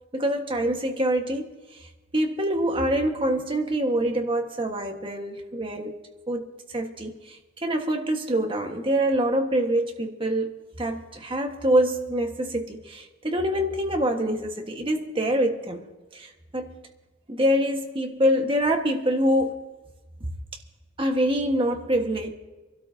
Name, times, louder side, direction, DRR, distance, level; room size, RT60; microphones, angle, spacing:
voice 1, 0.1-1.5 2.1-5.9 6.3-6.5 6.7-10.5 10.8-15.9 16.1-16.7 17.3-19.6 21.0-22.3, right 1 dB, 25° right, 1.5 m, -25 dB
27.0 x 12.5 x 2.8 m
head